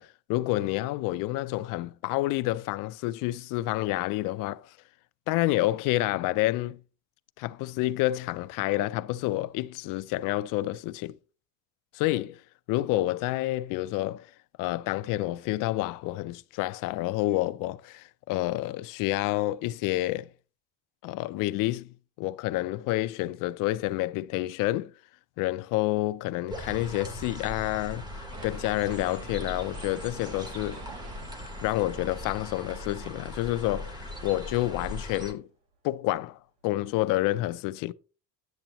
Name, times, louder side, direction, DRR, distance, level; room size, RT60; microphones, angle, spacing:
voice 1, 0.0-4.7 5.3-6.8 7.4-11.2 11.9-12.4 12.7-14.3 14.6-20.3 21.0-21.9 22.2-24.9 25.4-30.8 31.6-35.5 35.8-37.9, left 17 dB, 55° left, 0.4 m, -29 dB
sound 1, 26.5-35.3, left 1 dB, 10° right, 0.8 m, -39 dB
sound 2, 28.3-34.3 34.7-34.8, right 4 dB, 75° right, 3.0 m, -50 dB
10.5 x 7.8 x 2.9 m
cardioid pair, 180°, 41 cm